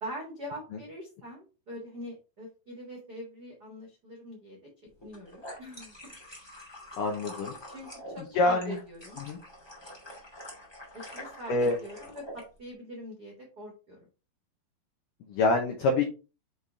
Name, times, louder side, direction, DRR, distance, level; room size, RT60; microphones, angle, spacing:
voice 1, 0.0-4.6 5.0-5.9 7.7-9.2 10.9-14.1, equal, 75° right, -2 dB, 0.9 m, -43 dB
sound 1, 5.0-12.4, equal, 30° left, 0.5 m, -46 dB
voice 2, 7.0-7.5 8.4-8.8 9.2-9.4 11.5-11.7 15.3-16.0, left 2 dB, 90° left, 3 dB, 1.9 m, -25 dB
6.7 x 4.2 x 3.5 m, 0.33 s
omnidirectional pair, 5.1 m